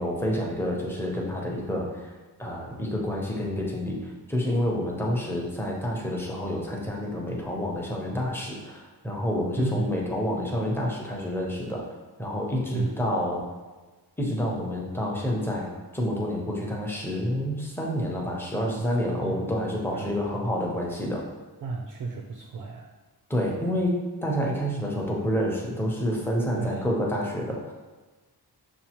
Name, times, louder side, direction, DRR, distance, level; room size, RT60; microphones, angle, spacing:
voice 1, 0.0-2.1 2.4-11.9 12.2-13.4 14.2-21.3 23.3-27.7, equal, 5° left, -2 dB, 0.6 m, -28 dB
voice 2, 9.6-9.9 12.7-13.0 19.2-19.4 19.9-20.2 21.6-22.9 26.5-26.9, right 4 dB, 65° right, 1 dB, 0.5 m, -32 dB
6.8 x 2.4 x 2.9 m, 1.3 s
wide cardioid pair, 170°, 39 cm